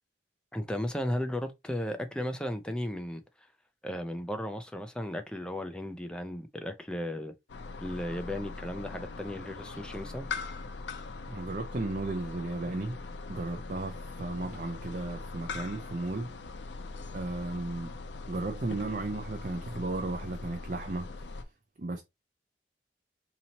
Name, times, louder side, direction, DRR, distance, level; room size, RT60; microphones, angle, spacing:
voice 1, 0.5-3.5 3.8-7.3 7.8-10.3, left 1 dB, 5° left, 0.4 m, -35 dB
sound 1, 7.5-21.4, left 3 dB, 80° left, 0.5 m, -41 dB
voice 2, 11.3-13.0 13.3-16.3 17.1-17.9 18.3-21.1 21.8-22.0, right 2 dB, 45° right, 0.5 m, -34 dB
4.0 x 2.9 x 2.8 m
head